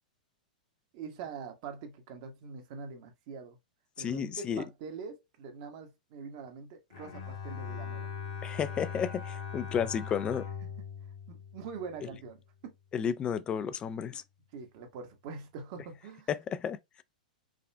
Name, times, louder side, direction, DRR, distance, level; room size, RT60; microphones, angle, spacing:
voice 1, 0.9-3.6 4.0-8.1 11.3-12.7 14.5-16.3, right 5 dB, 45° right, 0.9 m, -44 dB
voice 2, 4.0-4.6 8.4-10.5 12.9-14.2 16.3-16.8, left 8 dB, 20° left, 0.3 m, -32 dB
Bowed string instrument, 6.9-12.2, left 6 dB, 55° left, 1.1 m, -40 dB
4.9 x 2.4 x 2.2 m
figure-of-eight pair, 105°, 4 cm